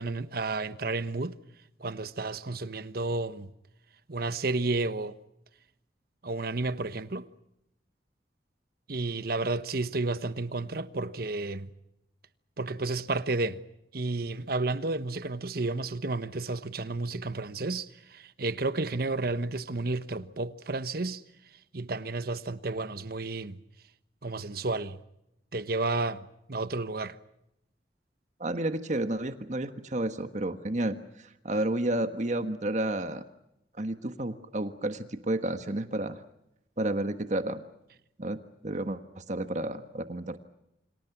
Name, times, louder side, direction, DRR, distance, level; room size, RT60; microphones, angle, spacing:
voice 1, 0.0-1.3 1.8-3.5 4.1-5.2 6.2-7.3 8.9-11.7 12.6-13.6 13.9-21.2 21.7-23.6 24.2-25.0 25.5-27.1, right 3 dB, 60° right, 1.2 m, -31 dB
voice 2, 28.4-33.2 33.8-36.2 36.8-37.6 38.2-40.4, right 1 dB, 45° right, 1.4 m, -31 dB
29.5 x 26.5 x 6.0 m
head